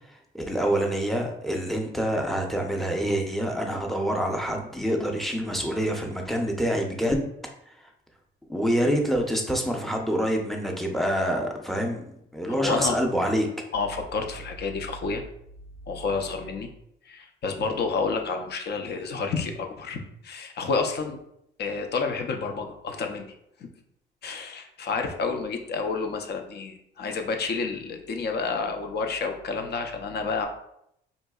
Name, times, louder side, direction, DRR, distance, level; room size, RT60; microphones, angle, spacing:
voice 1, 0.3-7.3 8.5-12.0 12.3-13.5, equal, ahead, 1 dB, 0.6 m, -26 dB
voice 2, 12.5-13.0 13.7-15.2 15.9-16.7 17.1-21.2 21.6-23.3 24.2-30.5, left 4 dB, 55° left, 5 dB, 0.6 m, -29 dB
3.9 x 2.6 x 2.3 m, 0.75 s
cardioid pair, 90°, 20 cm